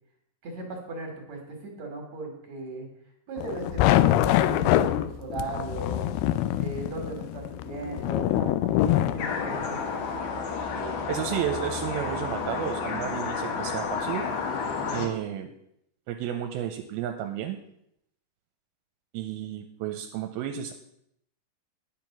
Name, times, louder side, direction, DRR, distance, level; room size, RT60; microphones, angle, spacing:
voice 1, 0.4-2.9 3.3-6.1 6.5-10.2 10.7-11.3, right 3 dB, 55° right, 3 dB, 2.6 m, -38 dB
sound 1, 3.4-9.7, left 13 dB, 85° left, 2.5 m, -24 dB
sound 2, 9.2-15.1, left 5 dB, 65° left, 2.4 m, -31 dB
voice 2, 11.1-14.2 14.9-15.5 16.1-17.6 19.1-20.7, right 10 dB, 80° right, 6 dB, 2.5 m, -32 dB
9.7 x 7.2 x 5.9 m, 0.75 s
omnidirectional pair, 4.4 m